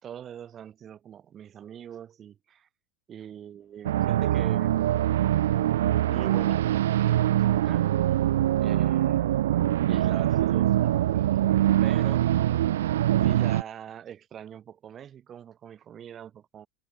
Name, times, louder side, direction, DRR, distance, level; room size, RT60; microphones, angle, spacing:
voice 1, 0.0-2.7 3.1-4.9 6.1-7.9 8.5-9.5 9.9-11.4 11.8-12.5 13.2-16.7, right 9 dB, 35° right, 2.3 m, -43 dB
sound 1, 3.8-13.6, right 13 dB, 80° right, 0.4 m, -23 dB
hypercardioid pair, 90°, 0 cm